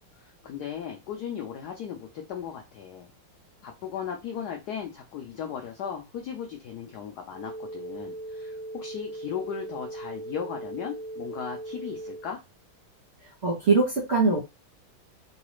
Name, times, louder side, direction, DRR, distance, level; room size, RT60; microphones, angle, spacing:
voice 1, 0.0-3.1 3.6-12.4, left 8 dB, 90° left, 3 dB, 0.8 m, -37 dB
sound 1, 7.3-12.3, right 2 dB, 20° left, 0.5 m, -39 dB
voice 2, 13.4-14.4, right 3 dB, 45° right, -2 dB, 0.8 m, -22 dB
3.9 x 2.3 x 3.1 m, 0.23 s
omnidirectional pair, 2.4 m